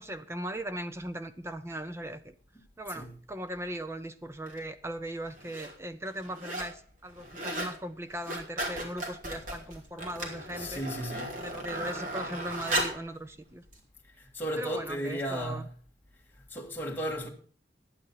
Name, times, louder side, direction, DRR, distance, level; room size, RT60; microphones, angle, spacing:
voice 1, 0.0-2.3 2.8-10.8 11.4-13.6 14.6-15.6, right 1 dB, 15° right, 0.5 m, -38 dB
sound 1, 4.5-4.6 5.3-5.7 6.1-6.8 7.1-7.8 8.1-13.1 13.7-13.8, right 1 dB, 45° right, 2.9 m, -35 dB
voice 2, 10.6-11.4 14.2-15.7 16.5-17.3, equal, 10° left, 1.8 m, -34 dB
11.0 x 9.0 x 5.8 m
head